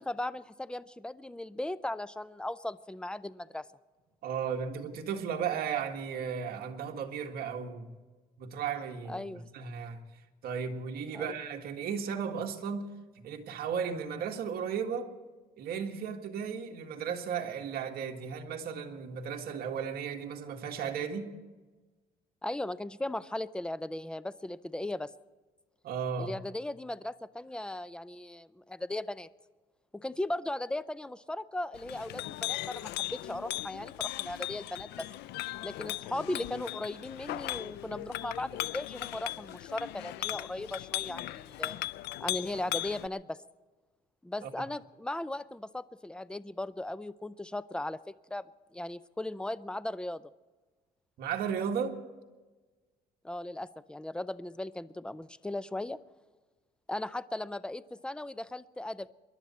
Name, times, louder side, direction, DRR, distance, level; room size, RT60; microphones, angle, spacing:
voice 1, 0.0-3.7 9.1-9.5 11.1-11.3 22.4-25.1 26.2-29.3 29.9-35.1 35.6-41.8 42.2-43.4 44.2-48.4 48.7-50.2 53.2-56.0 56.9-59.1, left 1 dB, 5° left, 0.5 m, -37 dB
voice 2, 4.2-8.0 8.4-10.0 10.4-12.9 13.2-15.1 15.6-21.3 25.8-26.3 44.4-44.5 51.2-52.0, right 7 dB, 65° right, 1.8 m, -35 dB
Chink clink, 31.7-43.1, left 16 dB, 80° left, 0.5 m, -38 dB
27.0 x 11.5 x 4.3 m
cardioid pair, 110°, 17 cm